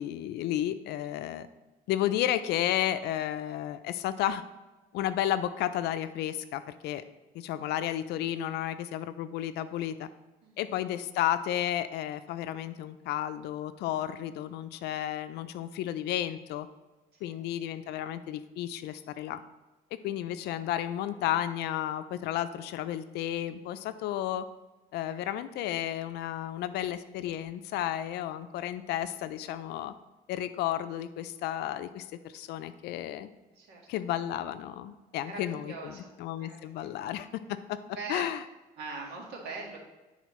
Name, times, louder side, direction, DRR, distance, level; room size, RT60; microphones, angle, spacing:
voice 1, 0.0-1.5 1.9-4.4 4.9-7.0 7.3-10.1 10.6-16.7 17.2-19.4 20.0-24.5 24.9-29.9 30.3-33.3 33.9-37.8 38.1-38.4, left 12 dB, 80° left, 12 dB, 0.5 m, -32 dB
voice 2, 33.5-33.8 35.2-36.9 37.9-38.2 38.8-39.8, right 3 dB, 80° right, -1 dB, 1.7 m, -42 dB
10.0 x 4.0 x 3.1 m, 1.1 s
cardioid pair, 110°, 17 cm